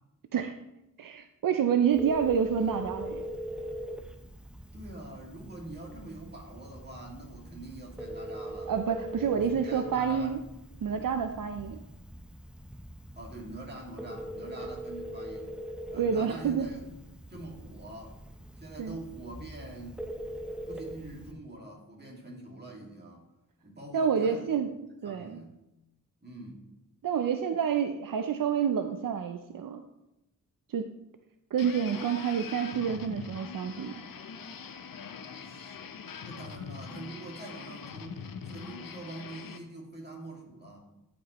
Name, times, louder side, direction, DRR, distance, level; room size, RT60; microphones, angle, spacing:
voice 1, 1.0-3.3 8.7-10.4 10.8-11.8 16.0-16.7 18.8-19.0 23.9-24.7 25.0-25.4 27.0-29.8 30.7-30.9 31.5-34.0, right 7 dB, 75° right, 7 dB, 0.5 m, -28 dB
Telephone, 1.9-21.3, equal, 5° right, 0.8 m, -42 dB
voice 2, 4.7-8.7 9.2-10.4 13.2-15.5 15.9-16.9 17.3-18.2 18.6-20.0 20.7-23.3 23.6-24.6 25.0-25.6 26.2-26.6 35.2-35.8 36.2-40.8, right 1 dB, 30° right, -2 dB, 2.2 m, -44 dB
sound 1, 31.6-39.6, left 6 dB, 75° left, 0.7 m, -43 dB
12.5 x 5.2 x 3.0 m, 0.93 s
wide cardioid pair, 65°, 34 cm